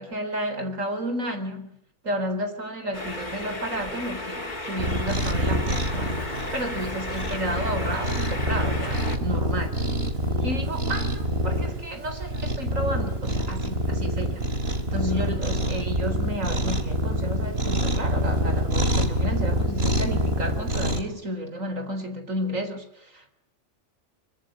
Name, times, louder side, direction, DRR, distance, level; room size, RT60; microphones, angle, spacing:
voice 1, 0.0-1.7 2.0-6.2 6.5-9.8 10.4-14.5 14.9-23.3, equal, 80° right, 4.4 m, -32 dB
sound 1, 2.9-9.2, left 2 dB, 35° left, 3.1 m, -34 dB
Cat, 4.8-21.0, equal, 50° right, 3.6 m, -26 dB
26.0 x 24.5 x 8.8 m
omnidirectional pair, 1.3 m